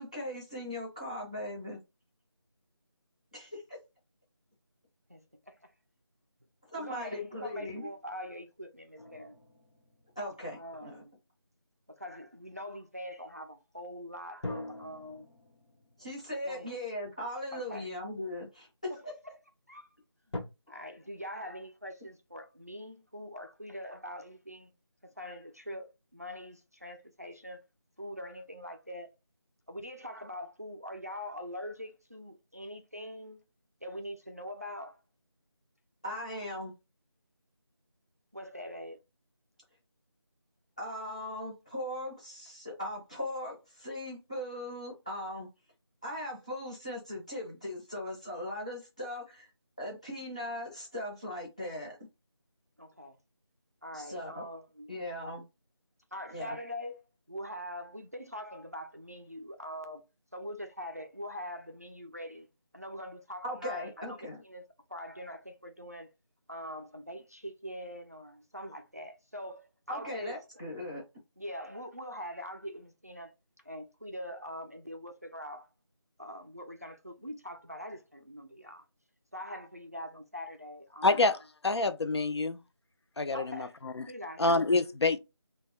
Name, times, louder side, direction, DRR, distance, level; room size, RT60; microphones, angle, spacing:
voice 1, 0.0-1.8 3.3-3.8 6.7-7.9 10.2-11.0 16.0-19.1 36.0-36.7 40.8-45.5 46.0-49.5 49.8-52.0 53.9-54.4 54.9-55.4 56.3-56.6 63.4-64.4 69.9-71.0, left 1 dB, 15° left, 0.6 m, -39 dB
voice 2, 5.1-5.7 6.8-9.4 10.6-11.1 11.9-15.3 16.4-16.8 17.5-17.9 18.9-19.4 19.7-19.9 20.4-24.7 25.0-27.6 28.0-29.1 29.7-33.4 33.8-35.0 38.3-39.0 52.8-53.2 53.8-54.9 56.1-57.0 57.3-60.0 60.3-62.5 62.7-64.6 64.9-66.1 66.5-70.3 71.4-73.3 73.6-75.7 76.2-78.9 79.3-81.3 83.3-83.8 84.1-84.4, equal, 35° right, 0.3 m, -43 dB
sound 1, 9.0-11.5 14.4-17.8 18.5-18.6 20.3-20.4, left 2 dB, 85° left, 1.0 m, -45 dB
voice 3, 81.0-81.4 81.6-82.6 83.2-84.1 84.4-85.2, left 3 dB, 70° left, 0.4 m, -27 dB
2.7 x 2.2 x 3.3 m
figure-of-eight pair, 175°, 15 cm